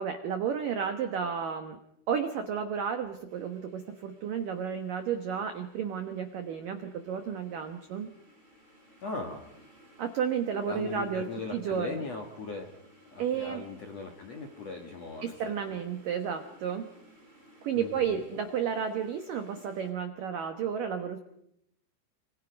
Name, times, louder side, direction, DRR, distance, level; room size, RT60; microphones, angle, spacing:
voice 1, 0.0-1.8 2.1-8.1 10.0-12.0 13.2-13.6 15.2-16.9 17.6-21.2, right 7 dB, 85° right, 7 dB, 1.9 m, -32 dB
sound 1, 3.3-19.9, equal, 10° right, 7.2 m, -59 dB
voice 2, 9.0-9.5 10.6-12.7 13.1-15.3 15.7-15.8 17.7-18.2, left 3 dB, 70° left, 3 dB, 1.6 m, -39 dB
27.0 x 25.5 x 5.2 m, 0.74 s
omnidirectional pair, 5.9 m